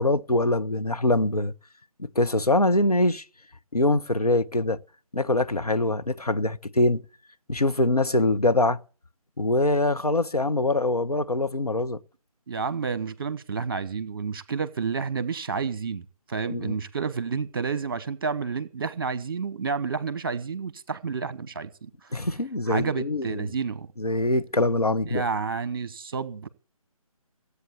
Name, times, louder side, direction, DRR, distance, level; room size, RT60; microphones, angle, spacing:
voice 1, 0.0-1.5 2.0-3.2 3.7-4.8 5.1-7.0 7.5-8.8 9.4-12.0 16.5-16.8 22.1-23.5 24.0-25.2, left 2 dB, 90° left, 1.1 m, -23 dB
voice 2, 12.5-22.2 22.7-23.9 25.1-26.5, right 5 dB, 40° right, 1.2 m, -30 dB
16.0 x 8.4 x 7.0 m
figure-of-eight pair, 150°, 19 cm